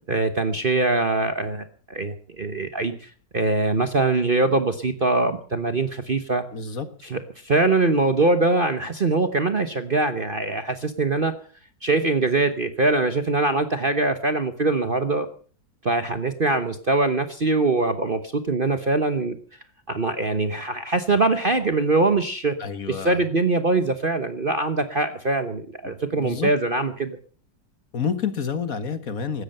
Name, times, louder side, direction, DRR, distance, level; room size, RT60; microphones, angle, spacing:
voice 1, 0.0-1.6 1.9-6.4 7.1-11.3 11.8-15.3 15.8-19.4 19.9-22.5 23.0-27.2, right 3 dB, 35° right, 9 dB, 1.1 m, -23 dB
voice 2, 6.5-6.9 22.6-23.2 25.8-26.5 27.9-29.4, left 6 dB, 50° left, 11 dB, 1.7 m, -29 dB
16.5 x 13.5 x 5.5 m, 0.42 s
omnidirectional pair, 2.0 m